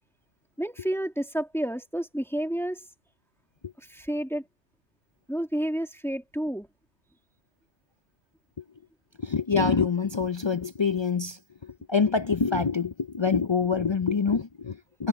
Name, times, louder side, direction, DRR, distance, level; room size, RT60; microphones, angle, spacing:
voice 1, 0.6-2.9 3.8-4.4 5.3-6.7, right 1 dB, ahead, 1.8 m, -30 dB
voice 2, 9.2-11.4 11.9-15.1, left 5 dB, 50° left, 0.3 m, -25 dB
omnidirectional pair, 1.2 m